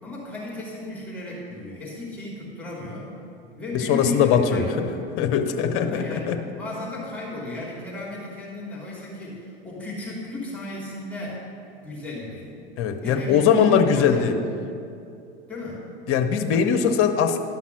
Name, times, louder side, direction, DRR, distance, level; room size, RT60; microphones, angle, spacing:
voice 1, 0.0-3.1 3.6-5.1 5.7-11.4 11.8-12.5 13.0-14.5 15.5-15.8 16.5-16.6, left 2 dB, 5° left, -5 dB, 2.8 m, -34 dB
voice 2, 3.7-4.9 5.2-6.4 12.8-14.3 16.1-17.4, left 7 dB, 40° left, 6 dB, 0.9 m, -21 dB
12.0 x 5.8 x 6.1 m, 2.6 s
figure-of-eight pair, 85°, 34 cm